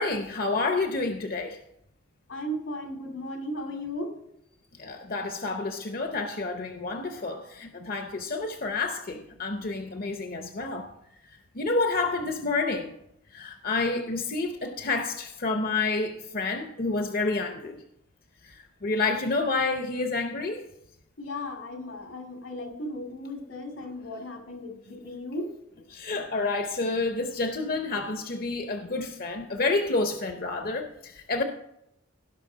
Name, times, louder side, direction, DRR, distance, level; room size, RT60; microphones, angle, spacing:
voice 1, 0.0-1.6 4.8-10.9 11.2-12.9 13.3-17.8 18.4-20.6 25.9-31.4, left 3 dB, 50° left, 5 dB, 0.8 m, -29 dB
voice 2, 2.3-4.1 21.2-25.5, left 1 dB, 85° left, 2 dB, 2.4 m, -36 dB
17.0 x 5.8 x 3.9 m, 0.79 s
head